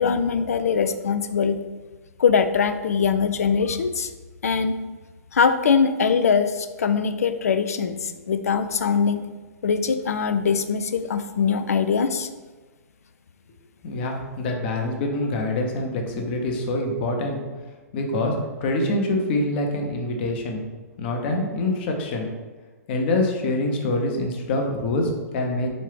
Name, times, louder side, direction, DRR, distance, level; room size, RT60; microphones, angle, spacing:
voice 1, 0.0-1.6 2.2-4.1 4.4-4.7 5.3-9.2 9.6-12.3, left 6 dB, 65° left, 10 dB, 0.4 m, -22 dB
voice 2, 13.8-17.4 17.9-18.3 18.6-20.6 21.0-22.3 22.9-25.7, left 2 dB, 40° left, 2 dB, 0.8 m, -25 dB
5.2 x 2.8 x 3.3 m, 1.3 s
figure-of-eight pair, 115°, 9 cm